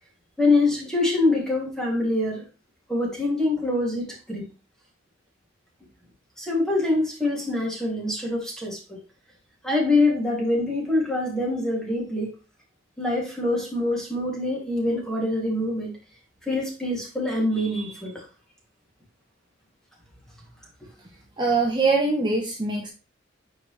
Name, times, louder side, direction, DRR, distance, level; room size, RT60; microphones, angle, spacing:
voice 1, 0.4-2.5 2.9-4.4 6.4-9.0 9.6-12.3 13.0-15.9 16.4-18.2, left 2 dB, 5° left, -3 dB, 2.9 m, -24 dB
voice 2, 21.4-22.9, right 3 dB, 25° right, -1 dB, 1.1 m, -23 dB
9.2 x 4.9 x 3.4 m, 0.32 s
head